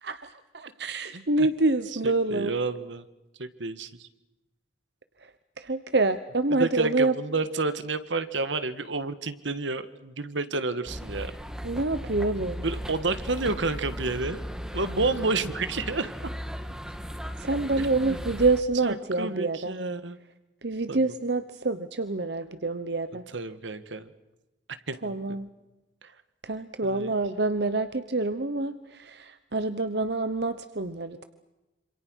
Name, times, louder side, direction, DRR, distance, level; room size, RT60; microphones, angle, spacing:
voice 1, 0.0-2.5 5.2-7.1 11.6-12.6 17.4-19.7 20.6-23.2 25.0-25.5 26.4-31.2, right 3 dB, 60° right, 11 dB, 1.0 m, -27 dB
voice 2, 1.1-1.5 2.0-3.1 3.4-4.1 6.5-11.3 12.6-14.4 14.7-16.3 17.8-18.2 18.8-20.2 20.9-21.0 23.3-24.1 24.9-25.4 26.0-26.2 26.8-27.1, right 3 dB, 80° right, 12 dB, 1.6 m, -30 dB
sound 1, 10.9-18.6, equal, 5° right, 1.6 m, -37 dB
27.0 x 27.0 x 6.4 m, 1.0 s
head